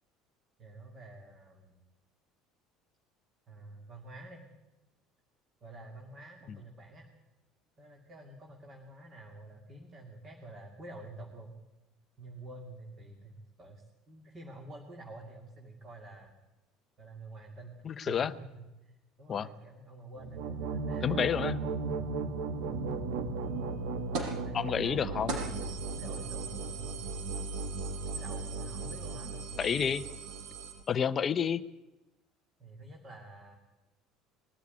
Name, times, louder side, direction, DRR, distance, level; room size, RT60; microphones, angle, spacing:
voice 1, 0.6-1.8 3.5-4.4 5.6-7.1 7.8-11.6 12.2-16.4 17.0-22.7 24.2-25.1 25.9-27.0 28.1-29.4 32.6-33.6, right 2 dB, 25° right, 1 dB, 2.4 m, -49 dB
voice 2, 17.8-18.3 19.3-19.5 21.0-21.6 24.5-25.4 29.6-30.0 30.9-31.6, left 7 dB, 25° left, 14 dB, 0.6 m, -29 dB
sound 1, 20.2-30.8, right 3 dB, 85° right, 1.8 m, -36 dB
sound 2, 24.1-24.4 24.8-24.9 25.3-30.7, right 5 dB, 60° right, 5.8 m, -41 dB
21.0 x 13.5 x 9.7 m, 1.0 s
cardioid pair, 175°, 0 cm